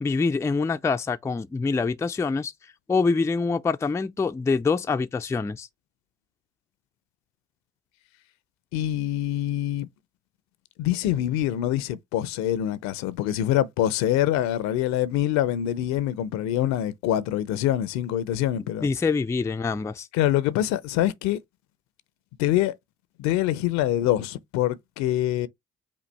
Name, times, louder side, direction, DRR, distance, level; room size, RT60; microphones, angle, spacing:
voice 1, 0.0-2.5 2.9-5.7 18.8-20.1, left 4 dB, 10° left, 0.4 m, -25 dB
voice 2, 8.7-9.9 10.8-18.9 20.1-21.4 22.4-22.7 23.2-25.5, left 12 dB, 60° left, 0.6 m, -25 dB
5.2 x 2.4 x 3.3 m
hypercardioid pair, 50°, 31 cm